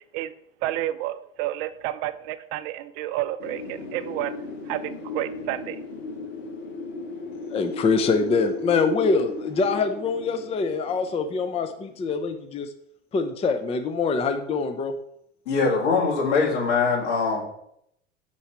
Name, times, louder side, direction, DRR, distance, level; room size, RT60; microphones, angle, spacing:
voice 1, 0.6-4.3 4.7-5.8, right 14 dB, 55° right, 12 dB, 0.5 m, -30 dB
Wind, 3.4-12.1, left 3 dB, 55° left, 2.1 m, -35 dB
voice 2, 7.5-12.7 13.1-15.0, left 4 dB, 15° left, 7 dB, 0.5 m, -24 dB
voice 3, 15.5-17.4, left 4 dB, 70° left, -3 dB, 2.3 m, -22 dB
5.6 x 4.5 x 4.2 m, 0.75 s
hypercardioid pair, 80°, 36 cm